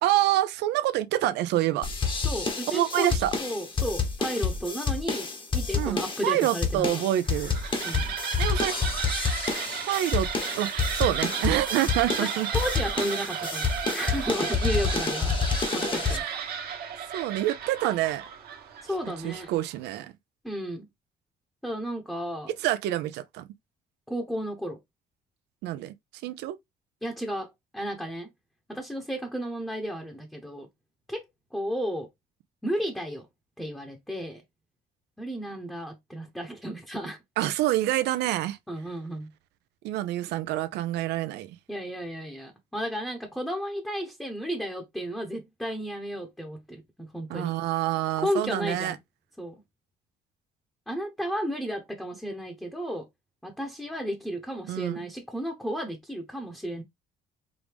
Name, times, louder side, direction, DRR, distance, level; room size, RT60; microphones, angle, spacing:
voice 1, 0.0-1.9 2.7-3.3 5.7-7.6 8.4-9.0 9.8-10.3 10.5-12.5 16.1-16.4 17.1-18.3 19.2-20.1 22.6-23.5 25.6-25.9 26.2-26.6 37.4-38.6 39.8-41.6 47.3-49.0 54.7-55.0, right 14 dB, 85° right, 0.5 m, -27 dB
sound 1, 1.8-16.2, left 5 dB, 30° left, 1.0 m, -29 dB
voice 2, 2.2-7.0 7.8-8.1 12.2-15.3 15.7-16.2 18.8-19.5 20.4-20.9 21.6-22.5 24.1-24.8 27.0-28.3 28.7-30.7 31.1-31.2 31.5-32.1 32.6-33.3 33.6-34.4 35.2-37.2 38.7-39.3 41.7-47.5 48.2-49.0 49.4-49.6 50.9-53.1 53.4-56.8, equal, 5° left, 0.9 m, -33 dB
sound 2, 7.1-19.7, right 7 dB, 65° right, 1.2 m, -34 dB
4.8 x 2.6 x 3.4 m
cardioid pair, 110°, 17 cm